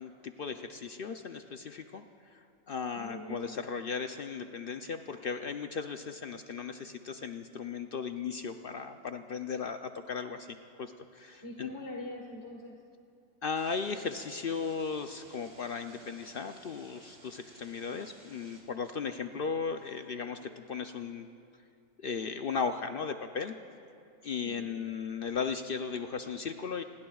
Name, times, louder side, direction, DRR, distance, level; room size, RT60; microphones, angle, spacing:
voice 1, 0.0-11.7 13.4-21.3 22.0-23.5 24.2-26.8, left 5 dB, 65° left, 7 dB, 0.5 m, -36 dB
voice 2, 2.9-3.6 11.4-12.8 24.4-24.7, left 1 dB, 20° left, -1 dB, 1.3 m, -43 dB
sound 1, 13.5-18.6, right 1 dB, 60° right, 3.1 m, -56 dB
27.0 x 20.5 x 2.3 m, 2.5 s
omnidirectional pair, 1.5 m